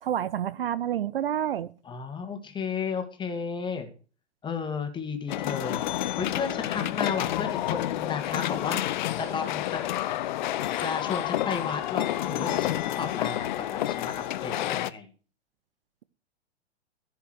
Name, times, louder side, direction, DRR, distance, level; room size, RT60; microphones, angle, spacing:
voice 1, 0.0-1.7, right 10 dB, 55° right, 17 dB, 0.7 m, -28 dB
voice 2, 1.8-3.9 4.4-5.8 6.2-9.8 10.8-15.1, left 5 dB, 15° left, 6 dB, 2.2 m, -33 dB
sound 1, 5.3-14.9, left 13 dB, 45° left, 0.8 m, -29 dB
15.5 x 5.8 x 6.2 m, 0.37 s
figure-of-eight pair, 105°, 34 cm